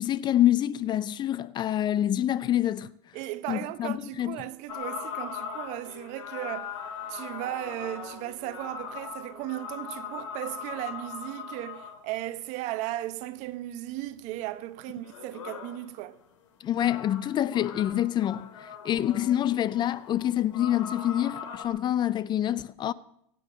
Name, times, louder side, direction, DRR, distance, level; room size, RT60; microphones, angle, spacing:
voice 1, 0.0-2.9 3.5-4.4 16.6-22.9, left 12 dB, 30° left, 0.5 m, -26 dB
voice 2, 3.1-6.7 7.1-16.2, right 15 dB, 50° right, 1.1 m, -36 dB
sound 1, 4.7-12.1 14.9-15.8 16.8-21.6, left 7 dB, 90° left, 2.9 m, -40 dB
22.5 x 8.7 x 6.4 m
supercardioid pair, 130°, 15 cm